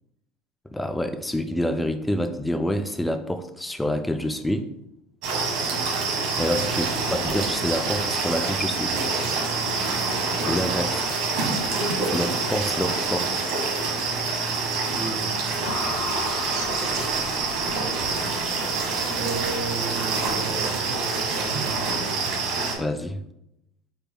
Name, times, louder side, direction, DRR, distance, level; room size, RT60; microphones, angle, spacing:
voice 1, 0.7-4.7 6.4-9.0 10.5-11.1 12.0-13.4 22.8-23.2, left 1 dB, 5° left, 8 dB, 0.3 m, -27 dB
sound 1, 5.2-22.7, right 4 dB, 65° right, 1.3 m, -26 dB
voice 2, 14.9-15.3 19.1-22.2, right 3 dB, 90° right, -2 dB, 1.5 m, -35 dB
sound 2, 15.6-18.9, left 3 dB, 75° left, 1.3 m, -36 dB
5.2 x 4.3 x 2.2 m, 0.84 s
supercardioid pair, 110°, 0 cm